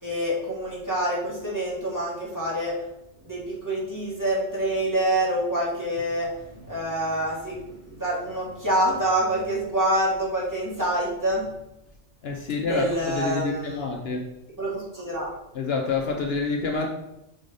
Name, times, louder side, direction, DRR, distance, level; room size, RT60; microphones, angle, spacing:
voice 1, 0.0-2.8 3.2-11.5 12.7-13.8 14.6-15.3, right 1 dB, 15° right, 2.3 m, -26 dB
voice 2, 12.2-14.3 15.5-16.9, left 4 dB, 65° left, 0.9 m, -27 dB
6.6 x 4.9 x 4.1 m
omnidirectional pair, 1.2 m